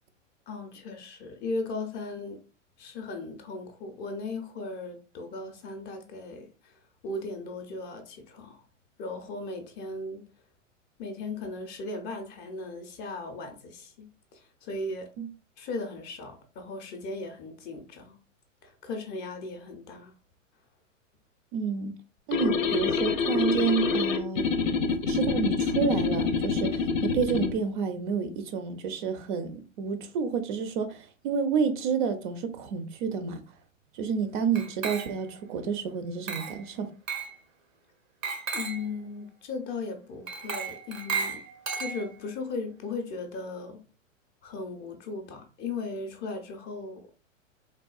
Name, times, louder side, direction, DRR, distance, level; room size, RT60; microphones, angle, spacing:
voice 1, 0.5-2.4 2.8-8.6 9.0-10.2 11.0-15.1 15.6-18.2 18.6-20.1 24.9-25.0 38.5-41.4 41.7-43.8 44.4-47.0, left 3 dB, 25° left, 0.5 m, -37 dB
voice 2, 21.5-21.9 22.3-24.5 25.1-33.4 33.9-36.9, right 6 dB, 40° right, 0.5 m, -29 dB
sound 1, 22.3-27.5, left 5 dB, 85° left, 0.6 m, -26 dB
Glass, 34.6-35.4 36.3-36.7 37.1-37.4 38.2-38.9 40.3-42.3, right 5 dB, 90° right, 0.9 m, -34 dB
3.6 x 2.3 x 2.3 m
hypercardioid pair, 110°, 39 cm